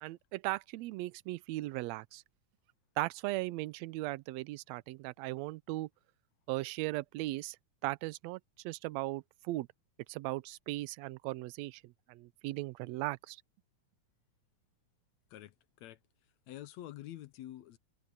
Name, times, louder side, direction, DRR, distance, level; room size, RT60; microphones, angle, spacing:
voice 1, 0.0-2.2 3.0-5.9 6.5-7.6 7.8-9.7 10.1-13.4, right 19 dB, 75° right, 1.7 m, -38 dB
voice 2, 15.3-16.0 16.5-17.8, left 13 dB, 75° left, 2.0 m, -47 dB
omnidirectional pair, 3.5 m